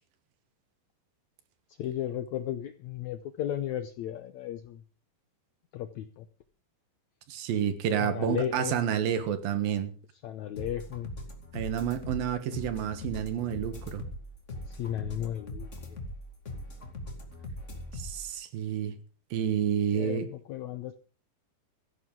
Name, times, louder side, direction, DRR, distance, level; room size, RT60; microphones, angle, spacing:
voice 1, 1.8-4.8 5.7-6.3 8.0-8.7 10.2-11.1 14.7-16.0 19.9-21.0, left 11 dB, 80° left, 10 dB, 1.6 m, -35 dB
voice 2, 7.3-9.9 11.5-14.0 17.9-18.9 19.3-20.3, right 9 dB, 75° right, 10 dB, 3.2 m, -29 dB
sound 1, 10.6-18.3, left 1 dB, 25° left, 2.3 m, -41 dB
16.5 x 14.5 x 3.8 m, 0.38 s
omnidirectional pair, 4.2 m